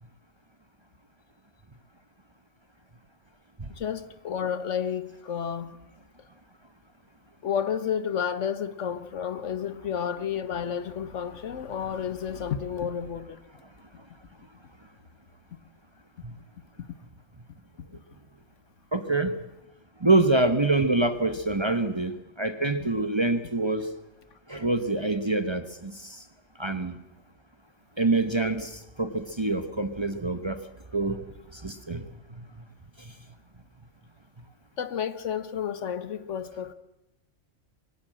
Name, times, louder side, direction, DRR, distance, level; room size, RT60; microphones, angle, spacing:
voice 1, 3.7-5.8 7.4-13.4 34.8-36.7, left 8 dB, 65° left, 1.3 m, -31 dB
voice 2, 18.9-19.3 20.0-23.9 24.5-26.2 26.6-27.0 28.0-30.6 30.9-31.2 31.5-32.0, right 2 dB, 25° right, 1.0 m, -25 dB
23.0 x 18.0 x 7.6 m
omnidirectional pair, 1.4 m